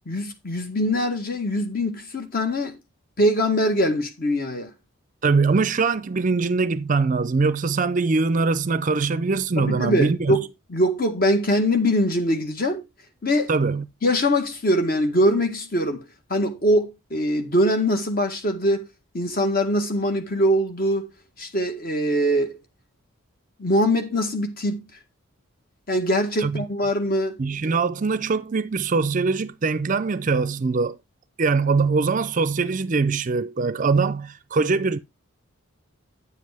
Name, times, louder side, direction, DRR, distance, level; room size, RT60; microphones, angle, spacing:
voice 1, 0.1-2.8 3.2-4.7 9.6-12.8 13.2-13.5 14.0-16.0 16.3-18.9 19.1-21.1 21.4-22.6 23.6-24.8 25.9-27.4, equal, 40° left, 1.8 m, -22 dB
voice 2, 5.2-10.4 13.5-13.9 26.4-26.6 27.4-31.0 31.4-35.0, right 4 dB, 35° right, 0.4 m, -22 dB
9.8 x 7.5 x 3.5 m
head